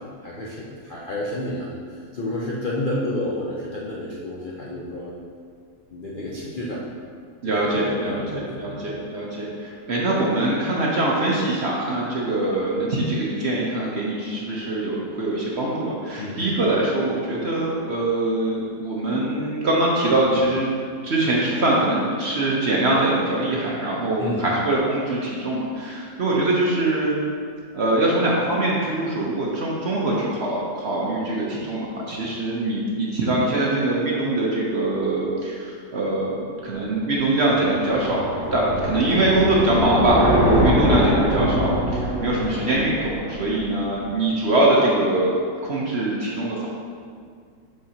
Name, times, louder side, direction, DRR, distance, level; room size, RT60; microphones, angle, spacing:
voice 1, 0.2-5.1 5.9-6.8 7.4-8.8 16.2-16.4 24.2-24.5, left 1 dB, 65° left, -5 dB, 0.5 m, -30 dB
voice 2, 7.4-8.2 8.6-20.7 21.0-27.1 27.7-45.3 45.6-46.6, right 2 dB, 55° right, -4 dB, 0.8 m, -23 dB
sound 1, 36.7-44.1, equal, 30° left, 1.5 m, -24 dB
6.5 x 5.8 x 2.8 m, 2.1 s
omnidirectional pair, 1.8 m